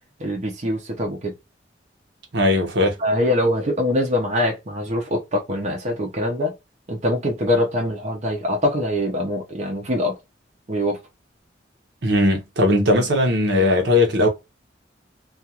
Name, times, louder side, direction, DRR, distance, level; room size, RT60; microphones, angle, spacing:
voice 1, 0.2-1.3 3.0-6.5 6.9-10.1 10.7-11.0, left 1 dB, 40° right, 0.7 m, -23 dB
voice 2, 2.3-3.0 12.0-14.3, left 1 dB, 70° right, 0.9 m, -18 dB
2.4 x 2.4 x 2.8 m
head